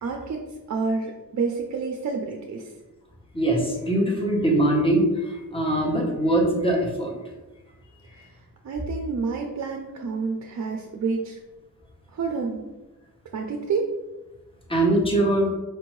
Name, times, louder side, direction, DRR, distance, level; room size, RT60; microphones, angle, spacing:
voice 1, 0.0-2.7 8.1-8.4 8.6-11.4 12.1-12.6 13.3-13.9, right 4 dB, 50° right, 2 dB, 0.4 m, -29 dB
voice 2, 3.3-7.1 14.7-15.5, right 1 dB, 15° left, -1 dB, 0.9 m, -22 dB
4.4 x 2.6 x 3.1 m, 1.1 s
wide cardioid pair, 110°, 36 cm